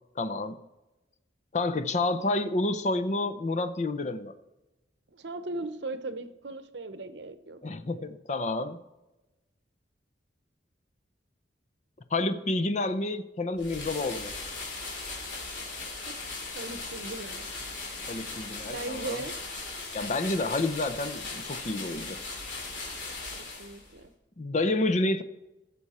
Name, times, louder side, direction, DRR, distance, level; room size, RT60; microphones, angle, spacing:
voice 1, 0.2-0.6 1.5-4.3 7.6-8.8 12.1-14.3 18.1-19.2 19.9-22.2 24.4-25.2, left 2 dB, 40° left, 12 dB, 0.6 m, -29 dB
voice 2, 5.1-7.6 16.1-16.2 16.5-17.5 18.7-19.4 23.4-24.1, right 2 dB, 70° right, 10 dB, 0.8 m, -38 dB
sound 1, 13.6-24.0, left 3 dB, 80° left, 3.3 m, -38 dB
16.5 x 7.0 x 4.3 m, 1.0 s
head